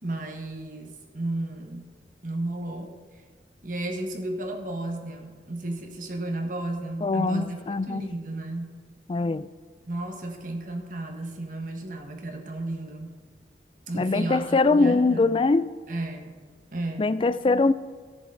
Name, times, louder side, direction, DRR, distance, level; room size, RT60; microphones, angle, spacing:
voice 1, 0.0-1.9 2.2-2.9 3.6-8.8 9.9-13.1 13.9-15.4 15.9-16.4 16.7-17.1, right 2 dB, 50° right, 1.4 m, -33 dB
voice 2, 7.0-8.1 9.1-9.5 13.9-15.7 17.0-17.7, left 3 dB, 30° left, 0.3 m, -22 dB
17.5 x 6.9 x 3.9 m
head